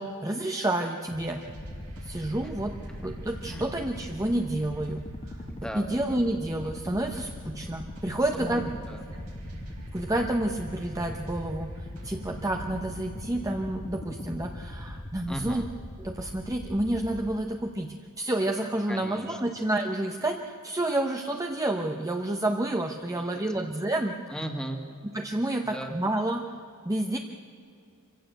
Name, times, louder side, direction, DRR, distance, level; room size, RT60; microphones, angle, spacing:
voice 1, 0.0-1.5 2.0-5.4 5.8-8.7 9.9-15.6 16.0-24.2 25.1-26.5 26.8-27.2, right 1 dB, 15° right, 3 dB, 0.8 m, -29 dB
sound 1, 1.1-13.1, right 1 dB, 85° right, 5.4 m, -47 dB
sound 2, 1.5-17.3, left 1 dB, 25° left, 1.1 m, -40 dB
voice 2, 5.5-5.9 8.3-9.1 15.3-15.7 18.9-19.4 23.1-23.4 24.3-24.9 25.6-26.0, right 1 dB, 5° left, 4 dB, 1.9 m, -37 dB
25.5 x 16.0 x 8.0 m, 2.4 s
head